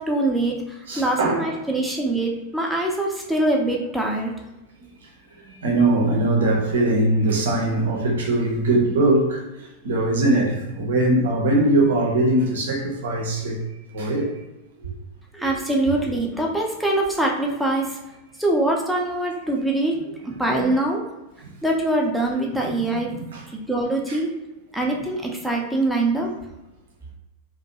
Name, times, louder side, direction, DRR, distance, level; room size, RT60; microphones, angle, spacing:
voice 1, 0.0-4.3 15.3-18.0 18.4-21.0 21.6-23.1 23.5-24.3 24.7-26.3, right 2 dB, ahead, -1 dB, 0.5 m, -23 dB
voice 2, 0.9-1.5 5.5-13.6 13.9-14.3 14.8-14.9 20.6-20.7 23.1-23.4 24.1-24.2, right 2 dB, 60° right, -1 dB, 0.7 m, -21 dB
2.5 x 2.2 x 2.7 m, 1.0 s
figure-of-eight pair, 90°, 0 cm